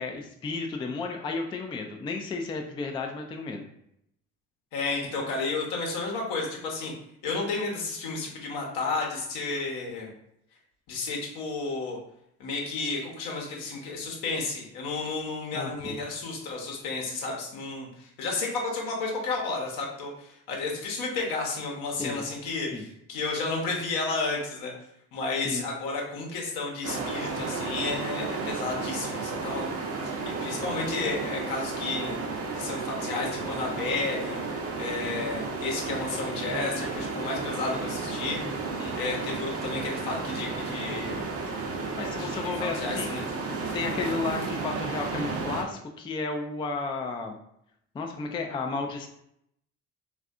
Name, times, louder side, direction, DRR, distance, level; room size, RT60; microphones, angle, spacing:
voice 1, 0.0-3.7 15.5-16.0 22.0-22.2 22.7-22.8 25.4-25.7 38.8-39.0 42.0-43.2 43.7-47.4 47.9-49.1, left 4 dB, 15° left, 3 dB, 0.3 m, -33 dB
voice 2, 4.7-6.9 7.2-10.1 10.9-12.0 12.4-24.7 25.1-29.7 30.0-30.1 30.4-32.2 32.5-34.4 34.8-38.4 39.0-41.3 42.2-43.2 43.6-44.1, left 3 dB, 70° left, -1 dB, 0.9 m, -32 dB
sound 1, 26.8-45.6, right 3 dB, 40° right, 0.6 m, -33 dB
3.3 x 2.5 x 2.4 m, 0.74 s
hypercardioid pair, 50°, 39 cm